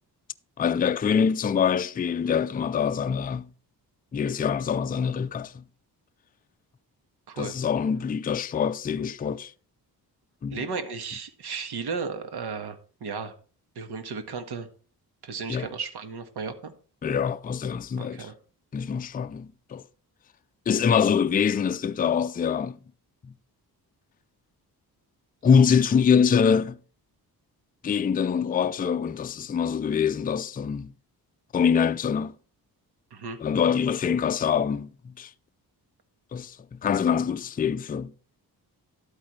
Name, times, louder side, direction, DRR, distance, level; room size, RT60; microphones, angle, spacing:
voice 1, 0.6-3.5 4.1-5.6 7.4-9.5 10.4-10.6 15.5-15.7 17.0-18.3 18.7-19.8 20.7-22.8 23.2-23.3 25.4-26.8 27.8-30.9 31.5-32.3 33.4-35.3 36.3-38.1, left 7 dB, 25° left, 0.4 m, -24 dB
voice 2, 10.5-13.3 13.8-14.7 15.2-16.7 18.0-18.3 33.1-33.4, right 5 dB, 85° right, 1.7 m, -34 dB
12.0 x 8.6 x 3.2 m
wide cardioid pair, 145°, 39 cm